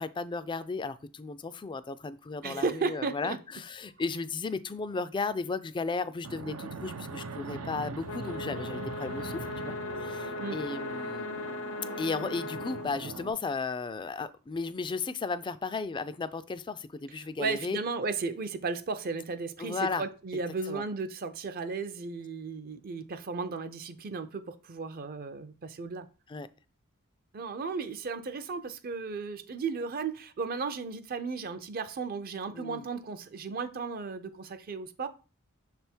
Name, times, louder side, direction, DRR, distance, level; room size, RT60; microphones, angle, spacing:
voice 1, 0.0-9.8 10.0-11.3 12.0-17.8 19.6-20.0 20.7-20.8 26.3-26.5 32.5-32.8, left 4 dB, 20° left, 0.3 m, -35 dB
voice 2, 2.4-3.4 10.4-10.6 17.2-26.1 27.3-35.1, right 4 dB, 45° right, 0.5 m, -35 dB
Fixed-wing aircraft airplane, 6.2-13.3, right 4 dB, 90° right, 0.6 m, -40 dB
sound 1, 8.0-12.9, left 4 dB, 65° left, 0.6 m, -38 dB
6.4 x 3.5 x 4.3 m
head